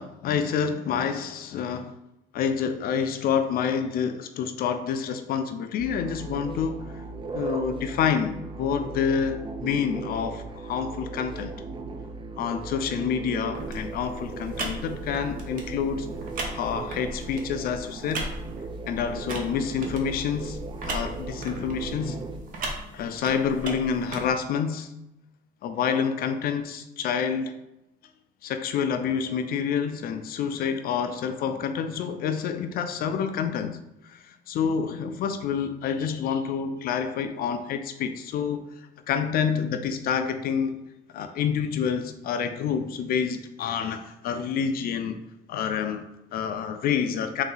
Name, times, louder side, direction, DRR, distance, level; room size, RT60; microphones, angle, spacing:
voice 1, 0.0-1.9 2.3-7.0 7.3-11.5 12.4-16.1 16.5-18.3 18.9-22.2 22.9-24.9 25.6-27.6 28.4-33.8 34.0-40.8 41.1-45.2 45.5-47.4, left 7 dB, 60° left, 8 dB, 0.4 m, -28 dB
sound 1, 5.8-22.4, right 3 dB, 30° right, 0.4 m, -37 dB
sound 2, 13.5-24.3, right 2 dB, 55° right, 0.9 m, -38 dB
3.9 x 2.7 x 3.9 m, 0.89 s
cardioid pair, 110°, 17 cm